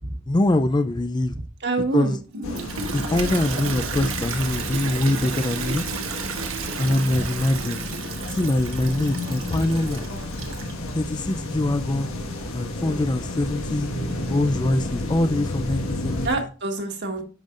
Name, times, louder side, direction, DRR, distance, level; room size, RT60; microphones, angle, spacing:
voice 1, 0.3-1.3 1.9-2.2 2.9-5.8 6.8-7.8 8.3-10.1 10.9-12.1 12.5-13.9 14.3-16.5, left 1 dB, 20° left, 0.4 m, -23 dB
voice 2, 1.3-2.2 16.2-17.2, right 3 dB, 55° right, 1.7 m, -27 dB
Toilet flush, 2.3-10.9, right 5 dB, 75° right, 1.1 m, -33 dB
sound 1, 2.4-16.3, left 1 dB, 85° left, 1.6 m, -31 dB
10.5 x 5.3 x 2.5 m
head